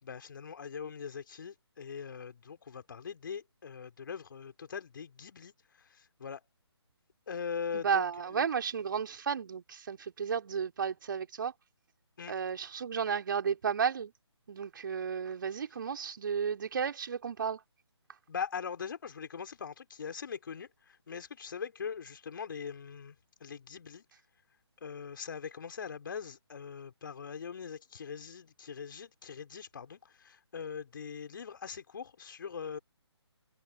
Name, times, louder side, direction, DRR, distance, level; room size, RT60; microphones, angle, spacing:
voice 1, 0.0-5.5 6.2-6.4 7.3-8.0 8.3-8.4 12.2-12.3 18.3-23.1 23.4-24.0 24.8-32.8, left 6 dB, 50° left, 4.1 m, -41 dB
voice 2, 7.7-11.5 12.3-14.1 14.5-17.6, right 7 dB, 45° right, 3.8 m, -33 dB
figure-of-eight pair, 145°, 15 cm